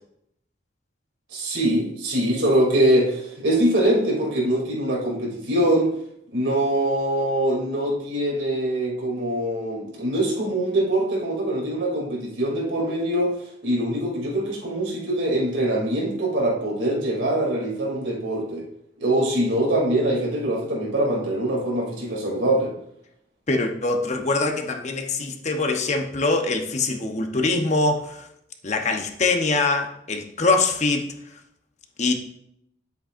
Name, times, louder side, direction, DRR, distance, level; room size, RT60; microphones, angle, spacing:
voice 1, 1.3-5.9 6.3-13.3 13.6-18.7 19.0-22.7, right 1 dB, 85° right, -2 dB, 2.9 m, -23 dB
voice 2, 23.5-28.3 28.6-31.1 32.0-32.1, left 3 dB, 40° left, 4 dB, 0.9 m, -23 dB
10.0 x 7.9 x 2.5 m, 0.76 s
head